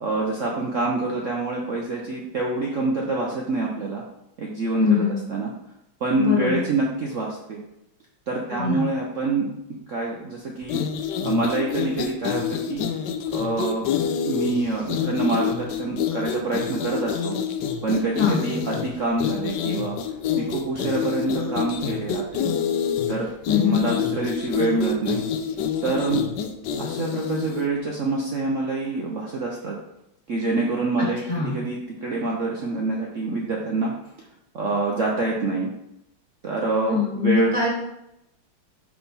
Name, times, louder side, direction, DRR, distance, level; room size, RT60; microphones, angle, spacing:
voice 1, 0.0-4.0 4.4-5.5 6.0-7.6 8.3-9.6 9.9-10.8 11.2-12.9 13.3-13.9 14.2-17.4 17.8-20.0 20.4-22.5 23.1-23.3 23.6-25.2 25.8-26.2 26.8-29.8 30.3-33.9 34.5-35.7 36.4-37.5, right 2 dB, 70° right, -2 dB, 0.7 m, -26 dB
voice 2, 4.8-5.2 6.2-6.6 8.5-8.9 18.2-18.4 23.5-23.8 31.3-31.6 36.9-37.7, left 5 dB, 20° left, -4 dB, 1.5 m, -22 dB
sound 1, 10.6-27.7, left 8 dB, 75° left, 1.0 m, -27 dB
5.8 x 4.5 x 4.0 m, 0.83 s
omnidirectional pair, 2.3 m